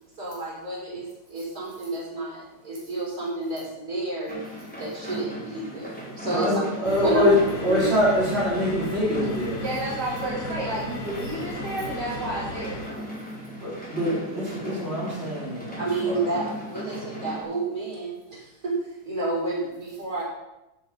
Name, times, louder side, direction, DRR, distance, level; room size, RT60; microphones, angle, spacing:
voice 1, 0.2-4.4 4.8-7.3 7.7-7.9 15.8-20.2, right 2 dB, 55° right, -7 dB, 6.6 m, -30 dB
sound 1, 4.3-17.4, equal, 5° left, 4.2 m, -38 dB
voice 2, 6.3-7.4 7.6-9.6 13.6-15.7 16.0-16.2, left 1 dB, 35° right, -7 dB, 5.1 m, -24 dB
sound 2, 6.8-12.9, left 2 dB, 55° left, 2.3 m, -36 dB
voice 3, 9.6-12.8, right 1 dB, 75° right, -6 dB, 3.5 m, -31 dB
15.0 x 8.3 x 5.8 m, 0.94 s
omnidirectional pair, 1.9 m